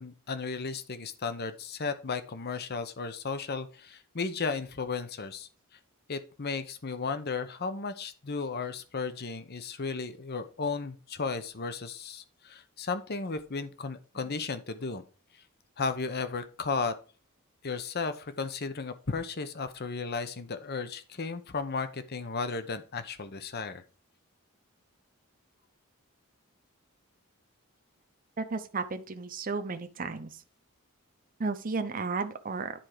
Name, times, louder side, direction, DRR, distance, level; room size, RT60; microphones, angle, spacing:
voice 1, 0.0-5.5 6.1-15.0 15.8-16.9 17.6-23.8, left 4 dB, 50° left, 10 dB, 0.9 m, -34 dB
voice 2, 28.4-30.3 31.4-32.7, right 4 dB, 40° right, 8 dB, 0.8 m, -33 dB
10.5 x 4.4 x 4.9 m, 0.36 s
head